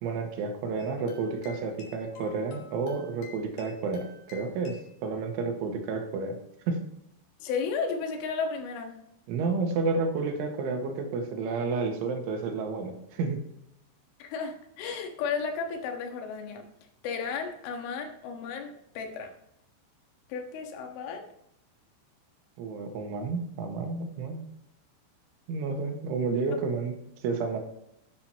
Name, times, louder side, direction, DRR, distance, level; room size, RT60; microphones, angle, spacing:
voice 1, 0.0-6.4 6.7-6.8 9.3-13.4 22.6-24.5 25.5-26.9 27.2-27.6, right 4 dB, 80° right, 4 dB, 3.9 m, -31 dB
sound 1, 0.8-5.0, left 5 dB, 50° left, 3.4 m, -51 dB
voice 2, 7.4-9.0 14.2-16.7 17.0-19.3 20.3-21.3 26.5-26.6, left 5 dB, 85° left, 4 dB, 4.0 m, -33 dB
12.0 x 10.5 x 2.9 m, 0.77 s
omnidirectional pair, 5.5 m